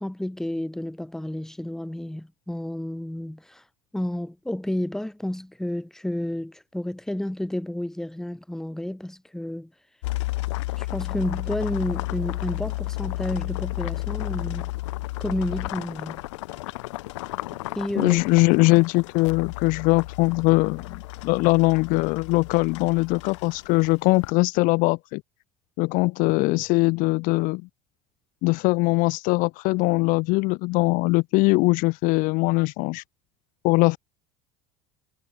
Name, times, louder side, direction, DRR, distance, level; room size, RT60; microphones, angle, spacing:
voice 1, 0.0-3.6 3.9-9.7 10.8-14.7 15.2-16.2 17.8-18.2, left 1 dB, 5° left, 0.9 m, -31 dB
sound 1, 10.0-24.3, left 19 dB, 85° left, 1.9 m, -33 dB
voice 2, 18.0-25.2 25.8-27.6 28.4-33.0 33.6-34.0, left 25 dB, 65° left, 0.5 m, -21 dB
supercardioid pair, 95°, 15 cm